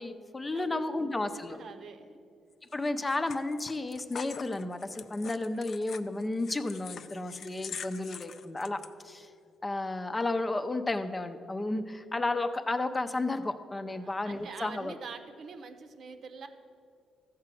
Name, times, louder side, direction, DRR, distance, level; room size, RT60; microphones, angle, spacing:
voice 1, 0.0-1.6 2.7-9.3 9.6-14.9, left 2 dB, 20° left, 9 dB, 0.7 m, -32 dB
voice 2, 0.5-2.2 13.9-16.5, right 5 dB, 60° right, 8 dB, 0.9 m, -46 dB
sound 1, 2.7-8.9, left 7 dB, 55° left, 0.5 m, -44 dB
14.0 x 4.8 x 7.6 m, 2.3 s
cardioid pair, 90°, 0 cm